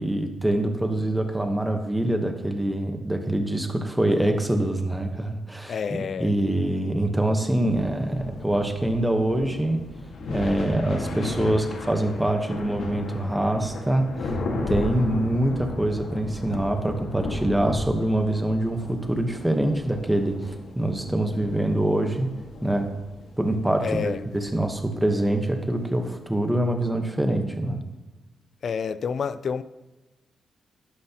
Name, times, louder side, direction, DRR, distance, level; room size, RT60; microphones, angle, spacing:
voice 1, 0.0-5.7 6.2-9.8 10.3-14.4 14.7-22.3 22.6-22.9 23.4-27.8, right 1 dB, 5° right, 1.1 m, -25 dB
voice 2, 5.7-6.3 23.8-24.2 28.6-29.6, left 6 dB, 50° left, 0.4 m, -28 dB
sound 1, 7.6-26.1, left 2 dB, 75° left, 1.7 m, -35 dB
11.5 x 11.5 x 2.9 m
wide cardioid pair, 140°, 0 cm